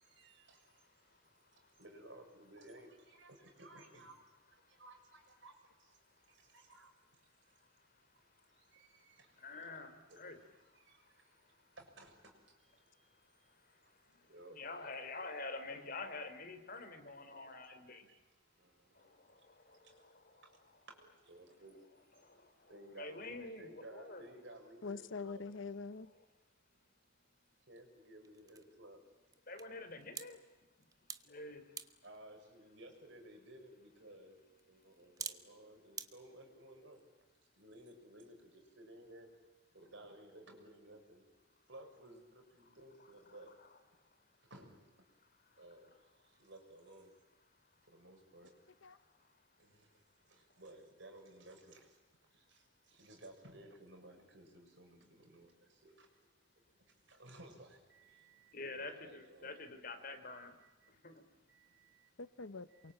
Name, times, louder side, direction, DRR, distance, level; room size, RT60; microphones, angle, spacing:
voice 1, 0.0-7.6 8.0-8.1 8.3-9.7 10.1-14.6 17.3-25.4 26.7-26.8 27.7-29.0 32.0-37.0 37.5-39.3 39.7-41.2 41.7-43.5 44.4-45.0 45.6-47.1 47.9-48.5 49.6-52.0 52.3-56.3 56.7-59.7 60.3-62.1 62.7-62.9, right 1 dB, 60° right, 3 dB, 6.7 m, -58 dB
voice 2, 9.4-10.4 14.5-18.1 19.2-20.5 22.1-24.3 26.0-26.1 29.5-30.4 31.3-31.6 43.3-43.8 58.5-60.5 61.0-61.1, left 3 dB, 45° left, 8 dB, 3.5 m, -47 dB
voice 3, 24.8-26.1 48.8-49.0 62.2-62.9, left 4 dB, 75° left, 14 dB, 1.0 m, -44 dB
sound 1, 26.7-36.1, right 6 dB, 20° right, 1.1 m, -53 dB
28.0 x 23.5 x 8.9 m, 1.2 s
head